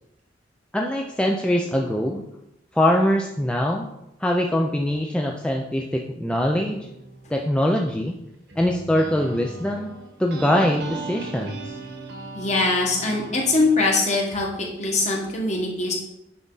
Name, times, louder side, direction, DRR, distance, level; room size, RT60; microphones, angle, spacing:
voice 1, 0.7-2.2 2.7-3.9 4.2-6.9 7.3-8.1 8.6-9.9 10.2-11.8, left 1 dB, 5° left, 0 dB, 0.4 m, -23 dB
sound 1, 6.6-13.7, right 2 dB, 70° right, 1.3 m, -38 dB
voice 2, 12.3-15.9, left 3 dB, 40° left, -1 dB, 1.6 m, -22 dB
9.3 x 3.6 x 4.0 m, 0.85 s
head